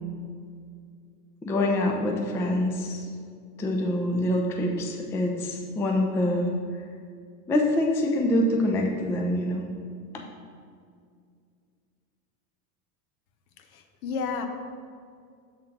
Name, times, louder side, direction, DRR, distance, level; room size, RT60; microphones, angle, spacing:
voice 1, 1.4-3.0 3.6-6.5 7.5-9.6 10.1-10.2, left 1 dB, 5° left, 1 dB, 0.3 m, -25 dB
voice 2, 13.6-14.5, left 5 dB, 65° left, 6 dB, 1.0 m, -32 dB
7.2 x 3.9 x 5.8 m, 2.2 s
hypercardioid pair, 100°, 47 cm